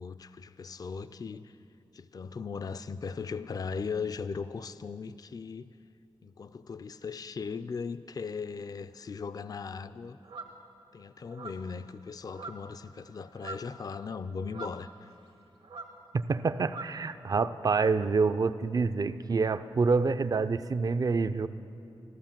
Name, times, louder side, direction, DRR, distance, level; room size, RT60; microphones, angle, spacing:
voice 1, 0.0-1.6 1.9-5.7 6.2-10.2 10.9-15.1, left 5 dB, 45° left, 13 dB, 0.4 m, -38 dB
sound 1, 10.2-10.6 11.3-11.8 12.3-12.8 13.1-13.8 14.5-15.3 15.6-16.0 16.6-17.0 17.9-18.1, right 3 dB, 75° right, 1.6 m, -44 dB
voice 2, 16.3-21.5, right 4 dB, 45° right, 12 dB, 0.4 m, -27 dB
14.0 x 13.0 x 7.4 m, 2.7 s
wide cardioid pair, 115°, 9 cm